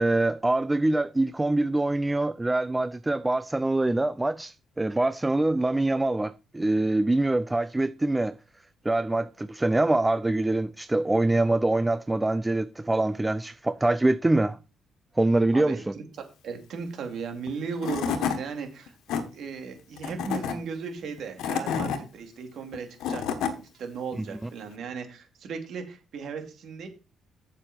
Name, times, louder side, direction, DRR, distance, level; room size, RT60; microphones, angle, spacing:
voice 1, 0.0-8.3 8.8-14.6 15.2-15.9 24.2-24.3, right 2 dB, 15° right, 0.5 m, -24 dB
voice 2, 15.5-16.0 16.4-18.9 19.3-26.9, right 5 dB, 70° right, 2.6 m, -36 dB
Tools / Wood, 17.5-17.6 17.8-18.4 18.9-19.2 20.0-20.5 21.2-22.0 22.7-23.5, left 7 dB, 90° left, 1.6 m, -28 dB
8.4 x 7.4 x 4.3 m
cardioid pair, 90°, 0 cm